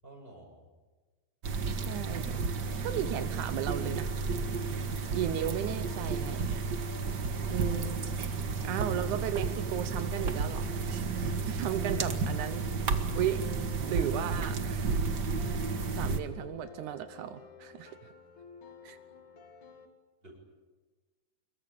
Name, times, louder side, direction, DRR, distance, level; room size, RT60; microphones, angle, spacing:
voice 1, 0.0-0.7 20.2-20.4, right 1 dB, 15° right, 1 dB, 7.5 m, -52 dB
sound 1, 1.4-16.2, right 4 dB, 45° right, 1.7 m, -32 dB
voice 2, 1.7-2.4 2.8-4.1 5.1-6.6 7.5-8.0 8.6-13.5 13.8-15.0 15.4-15.6 15.9-18.0 18.8-19.0, right 10 dB, 85° right, 10 dB, 2.5 m, -35 dB
sound 2, 3.9-19.9, left 4 dB, 75° left, 3.8 m, -52 dB
26.5 x 22.5 x 8.8 m, 1.3 s
omnidirectional pair, 3.4 m